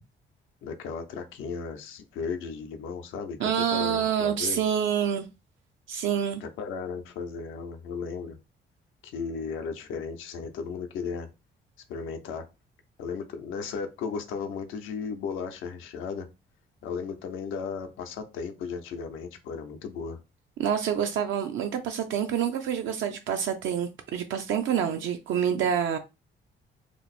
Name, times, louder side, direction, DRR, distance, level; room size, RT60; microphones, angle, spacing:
voice 1, 0.6-4.6 6.4-8.4 9.0-11.3 11.9-12.4 13.0-16.3 16.8-20.2, left 5 dB, 90° left, 0.6 m, -35 dB
voice 2, 3.4-5.3 5.9-6.4 20.6-26.0, right 8 dB, 75° right, 0.5 m, -27 dB
3.0 x 2.0 x 4.1 m
cardioid pair, 90°, 20 cm